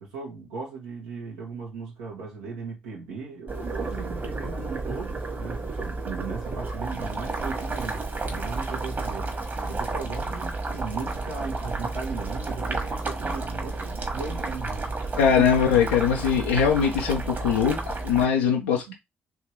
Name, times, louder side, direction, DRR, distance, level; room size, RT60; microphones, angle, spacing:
voice 1, 0.0-9.3 9.6-14.9 15.3-15.5 18.9-19.0, right 4 dB, 75° right, 0.9 m, -37 dB
Boiling, 3.5-18.2, right 3 dB, 35° right, 1.4 m, -31 dB
voice 2, 15.2-18.9, left 7 dB, 75° left, 0.5 m, -22 dB
3.4 x 3.1 x 3.0 m
figure-of-eight pair, 40°, 5 cm